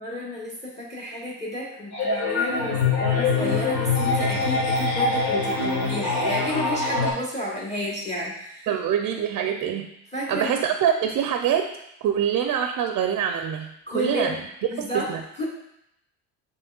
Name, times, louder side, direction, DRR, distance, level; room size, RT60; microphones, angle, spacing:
voice 1, 0.0-8.7 10.1-10.6 13.9-14.3 14.7-15.1 15.4-15.5, left 1 dB, 20° left, -3 dB, 1.1 m, -31 dB
sound 1, 1.9-7.1, left 3 dB, 75° left, 1.4 m, -24 dB
voice 2, 8.7-9.9 10.3-14.4 14.8-15.2, right 8 dB, 50° right, 5 dB, 0.5 m, -25 dB
6.7 x 3.1 x 2.4 m, 0.80 s
supercardioid pair, 75°, 39 cm